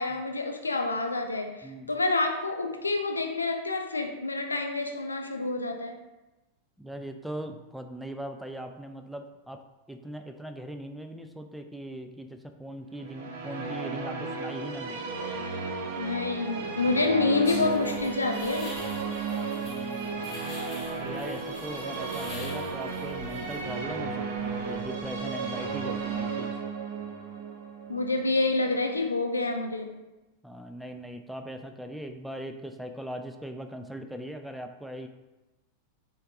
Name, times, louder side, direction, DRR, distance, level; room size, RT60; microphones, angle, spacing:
voice 1, 0.0-5.9 16.0-18.7 27.9-29.9, left 3 dB, 80° left, 5 dB, 0.4 m, -28 dB
voice 2, 6.8-9.6 9.9-15.0 19.6-20.5 21.0-26.6 30.4-35.1, right 1 dB, ahead, 6 dB, 0.3 m, -40 dB
sound 1, 13.0-29.0, right 4 dB, 50° right, 0.5 m, -34 dB
sound 2, 17.4-26.2, left 2 dB, 30° left, 1.0 m, -46 dB
4.4 x 3.6 x 2.4 m, 1.0 s
figure-of-eight pair, 90°, 0 cm